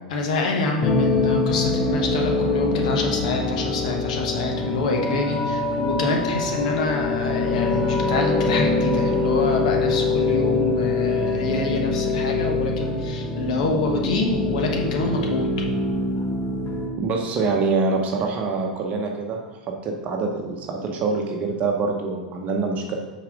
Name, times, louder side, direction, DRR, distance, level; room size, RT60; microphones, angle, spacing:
voice 1, 0.1-15.5, left 3 dB, 65° left, 1 dB, 1.1 m, -26 dB
sound 1, 0.8-16.9, left 3 dB, 35° left, 1.0 m, -24 dB
voice 2, 17.0-19.4 19.7-22.9, right 4 dB, 35° right, 1 dB, 0.8 m, -25 dB
5.7 x 4.2 x 4.9 m, 1.3 s
figure-of-eight pair, 85°, 4 cm